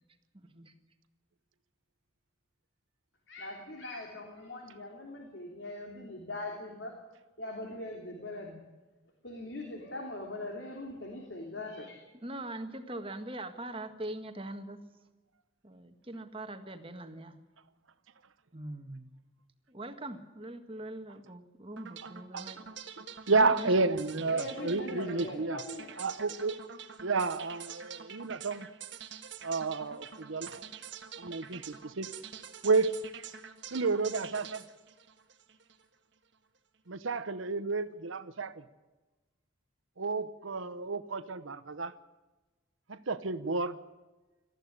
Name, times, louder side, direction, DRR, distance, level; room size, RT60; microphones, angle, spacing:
voice 1, 0.3-0.7 12.1-14.8 15.6-17.3 18.5-19.1 19.7-22.6 23.3-24.2, right 1 dB, 25° right, 7 dB, 1.6 m, -42 dB
voice 2, 3.3-6.9 7.4-8.6 9.2-12.0 24.2-25.9, left 2 dB, 60° left, 2 dB, 3.2 m, -41 dB
sound 1, 21.8-35.8, right 7 dB, 60° right, 1.5 m, -46 dB
voice 3, 23.0-25.6 26.0-26.6 27.0-28.7 29.4-30.7 31.2-32.1 32.6-33.0 33.7-34.6 36.9-38.6 40.0-41.9 42.9-43.8, right 3 dB, 75° right, 12 dB, 0.9 m, -31 dB
19.5 x 14.0 x 9.9 m, 1.2 s
head